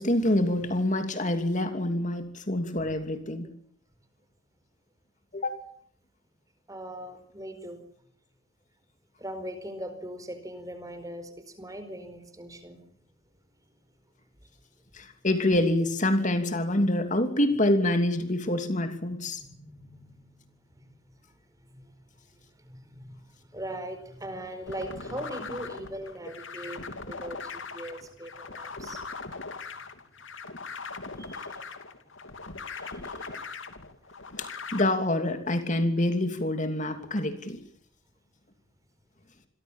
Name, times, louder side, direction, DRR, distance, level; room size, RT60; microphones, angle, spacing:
voice 1, 0.0-3.5 5.3-5.6 14.9-19.4 34.4-37.6, left 1 dB, 35° left, 7 dB, 2.9 m, -26 dB
voice 2, 6.7-7.8 9.2-12.8 19.1-20.5 22.7-23.1 23.5-29.0 31.2-31.4, right 1 dB, 15° right, 10 dB, 4.6 m, -40 dB
sound 1, 24.7-34.8, left 4 dB, 65° left, 3.0 m, -40 dB
28.5 x 23.0 x 7.3 m, 0.64 s
head